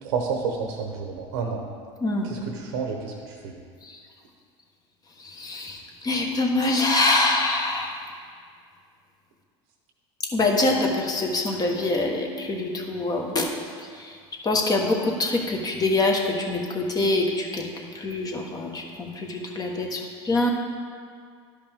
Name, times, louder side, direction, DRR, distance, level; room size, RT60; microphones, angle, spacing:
voice 1, 0.0-1.6 2.2-3.5, right 5 dB, 80° right, 2 dB, 1.0 m, -30 dB
voice 2, 5.4-5.8 6.0-7.9 10.3-13.5 14.4-17.7 17.9-20.0 20.2-20.5, left 2 dB, 25° left, 0 dB, 1.3 m, -24 dB
12.0 x 5.2 x 3.5 m, 2.1 s
supercardioid pair, 105°, 15 cm